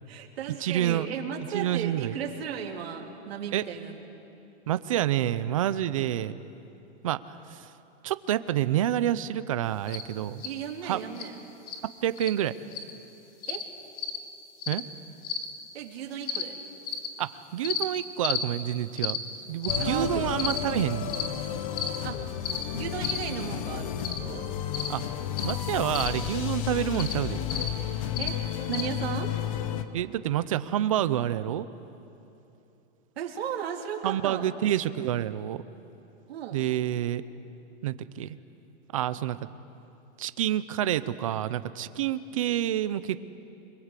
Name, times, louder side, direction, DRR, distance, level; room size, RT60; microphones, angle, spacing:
voice 1, 0.1-4.1 10.4-11.4 13.5-13.6 15.7-16.6 19.8-20.4 22.0-22.3 22.7-24.5 28.2-28.4 28.7-29.3 33.1-34.5 36.3-36.6, right 8 dB, 60° right, 1 dB, 3.4 m, -35 dB
voice 2, 0.6-1.1 1.5-2.2 3.5-3.6 4.7-6.3 7.0-7.7 8.0-10.4 10.8-11.0 12.0-12.6 14.7-14.8 17.2-19.2 19.5-21.1 24.9-25.0 25.4-27.4 29.9-31.7 34.0-35.6 36.5-37.2 37.8-38.4 38.9-39.4 40.2-43.2, right 12 dB, 30° right, 14 dB, 0.5 m, -28 dB
sound 1, 9.9-10.0 10.4-10.5 11.2-11.3 11.7-11.8 12.2-12.3 12.7-12.9 13.4-13.6 14.0-14.2 14.6-14.8 15.2-15.5 16.2-16.4 16.9-17.1 17.6-17.8 18.2-18.4 19.0-19.2 19.6-19.8 20.4-20.6 21.1-21.3 21.7-22.0 22.4-22.6 23.0-23.2 24.0-24.2 24.7-24.9 25.4-25.5 25.9-26.1 26.9-27.1 27.5-27.7 28.2-28.3 28.7-28.9, left 7 dB, 90° left, 3.0 m, -31 dB
sound 2, 19.7-29.8, left 10 dB, 30° left, 0.9 m, -32 dB
27.5 x 22.0 x 8.2 m, 2.8 s
supercardioid pair, 180°, 35 cm